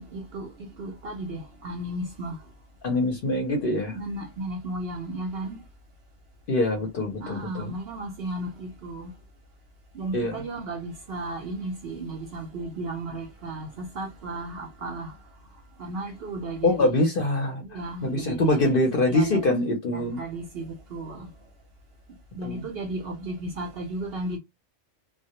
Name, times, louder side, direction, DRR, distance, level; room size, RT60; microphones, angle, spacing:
voice 1, 0.0-2.4 3.9-5.6 7.2-9.1 9.9-15.1 15.8-16.9 17.6-18.7 19.1-19.4 19.9-21.3 22.3-24.4, right 2 dB, 60° right, 0.7 m, -34 dB
voice 2, 2.8-4.0 6.5-7.7 10.1-10.4 16.6-20.2 22.4-22.7, left 2 dB, 55° left, 0.7 m, -24 dB
2.1 x 2.1 x 2.8 m
omnidirectional pair, 1.4 m